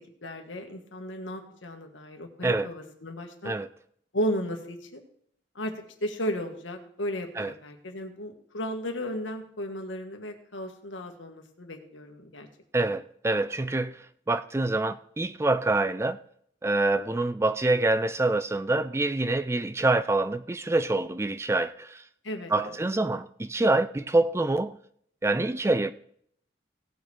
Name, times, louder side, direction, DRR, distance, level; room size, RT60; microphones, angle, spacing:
voice 1, 0.2-3.6 4.1-5.0 5.5-5.7 6.0-12.5 22.2-22.8, equal, 85° left, 1.7 m, -34 dB
voice 2, 12.7-14.0 14.3-16.2 16.6-22.0 22.5-24.8 25.2-25.9, right 2 dB, 15° right, 0.3 m, -26 dB
17.5 x 6.4 x 4.4 m
head